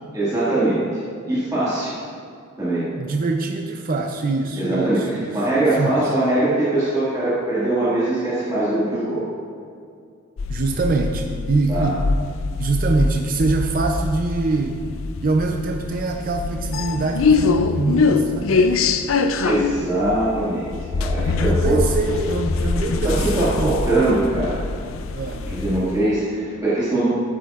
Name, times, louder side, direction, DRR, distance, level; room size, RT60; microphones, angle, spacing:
voice 1, 0.1-0.9 1.3-2.0 2.6-2.9 4.6-9.2 11.7-11.9 19.4-21.8 23.0-24.6 25.4-27.1, right 2 dB, 20° right, -11 dB, 2.0 m, -22 dB
voice 2, 3.0-6.0 10.5-12.0 12.6-14.8 15.2-19.0 21.4-23.8 25.1-25.5, right 3 dB, 45° right, 3 dB, 0.5 m, -24 dB
sound 1, 10.4-26.0, left 4 dB, 75° left, 0.4 m, -23 dB
11.0 x 8.4 x 2.4 m, 2.3 s
head